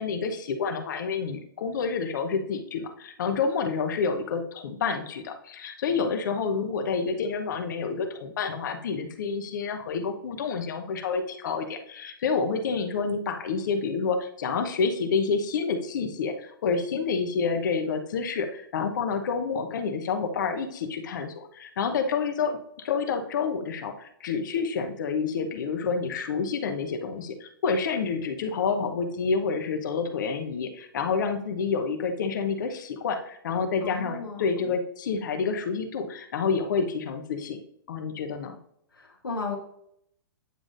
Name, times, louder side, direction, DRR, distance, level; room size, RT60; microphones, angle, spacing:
voice 1, 0.0-37.6 37.9-38.6, left 5 dB, 55° left, 6 dB, 0.9 m, -28 dB
voice 2, 33.8-34.7 38.9-39.6, left 4 dB, 80° left, -1 dB, 1.2 m, -35 dB
9.2 x 4.9 x 2.5 m, 0.72 s
figure-of-eight pair, 115°, 12 cm